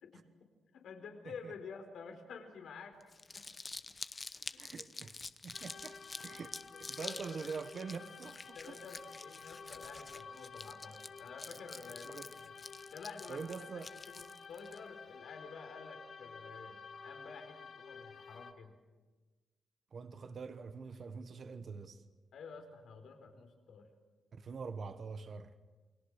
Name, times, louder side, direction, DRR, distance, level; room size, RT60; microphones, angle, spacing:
voice 1, 0.7-3.0 3.3-3.5 4.5-4.6 7.0-7.3 8.5-12.5 12.9-18.8 22.3-23.9, left 5 dB, 85° left, 4.2 m, -50 dB
Crumpling crinkling, 3.0-14.8, left 3 dB, 30° left, 0.8 m, -48 dB
voice 2, 4.6-8.8 12.0-12.3 13.3-13.9 19.9-22.0 24.3-25.5, right 5 dB, 50° right, 1.3 m, -45 dB
sound 1, 5.5-18.5, left 5 dB, 55° left, 2.1 m, -52 dB
29.0 x 23.0 x 6.6 m
cardioid pair, 120°, 0 cm